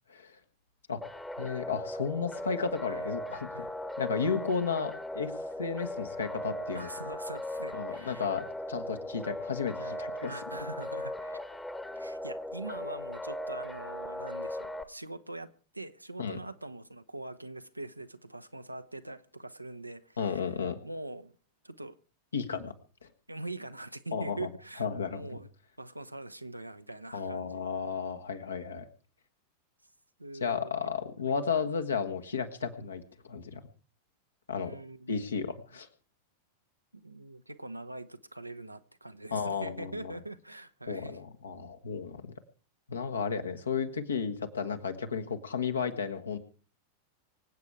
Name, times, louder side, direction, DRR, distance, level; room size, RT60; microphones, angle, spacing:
sound 1, 1.0-14.8, left 1 dB, 5° left, 1.1 m, -38 dB
voice 1, 1.4-3.7 4.0-5.3 5.6-6.9 7.7-10.3 16.2-16.4 20.2-20.8 22.3-22.7 23.0-23.1 24.1-24.5 24.8-25.4 27.1-28.9 30.4-33.6 34.5-34.8 35.1-35.9 39.3-40.2 40.9-42.3 42.9-46.4, left 5 dB, 70° left, 1.6 m, -33 dB
voice 2, 6.7-8.3 9.8-10.0 10.3-11.4 11.9-15.5 15.7-20.5 20.8-21.3 21.6-21.9 23.3-25.5 25.8-27.7 30.2-30.7 31.3-31.4 34.6-35.5 36.9-41.2, right 2 dB, 85° right, 0.8 m, -43 dB
25.0 x 8.5 x 4.8 m
figure-of-eight pair, 90°, 0 cm